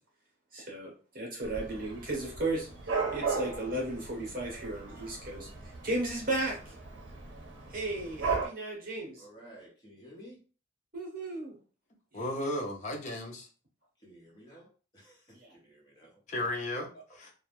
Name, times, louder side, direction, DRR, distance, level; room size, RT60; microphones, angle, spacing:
voice 1, 0.5-5.5 5.8-6.7 7.7-9.2 10.9-11.5 12.1-12.3 15.3-15.5, right 2 dB, 45° right, -1 dB, 0.9 m, -35 dB
Dog / Cat, 1.4-8.5, right 4 dB, 80° right, 0.6 m, -37 dB
voice 2, 9.2-10.4 14.0-16.2, equal, 20° left, -4 dB, 0.9 m, -53 dB
voice 3, 12.1-13.5 16.3-16.9 17.1-17.3, left 1 dB, 40° left, 2 dB, 0.5 m, -34 dB
2.3 x 2.0 x 2.9 m, 0.36 s
head